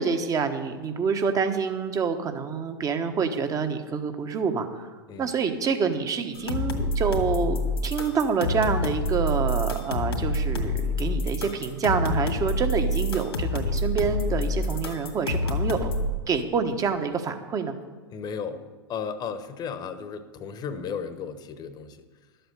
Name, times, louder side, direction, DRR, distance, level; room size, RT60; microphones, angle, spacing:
voice 1, 0.0-4.9 5.2-15.9 16.3-17.7, right 5 dB, 25° right, 7 dB, 1.2 m, -27 dB
sound 1, 6.3-16.1, left 1 dB, 80° left, 2.0 m, -27 dB
voice 2, 18.1-22.0, left 6 dB, 30° left, 10 dB, 1.1 m, -35 dB
12.0 x 7.9 x 6.7 m, 1.3 s
figure-of-eight pair, 95°, 13 cm